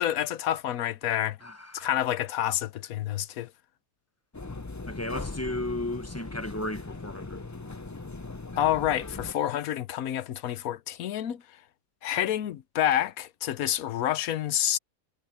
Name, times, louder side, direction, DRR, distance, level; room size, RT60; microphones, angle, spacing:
voice 1, 0.0-1.4 1.7-3.5 8.6-11.4 12.0-14.8, left 11 dB, 80° left, 1.2 m, -28 dB
voice 2, 1.4-1.9 4.9-7.4, left 1 dB, 10° left, 1.2 m, -34 dB
sound 1, 4.3-9.3, left 3 dB, 30° left, 0.3 m, -39 dB
omnidirectional pair, 1.5 m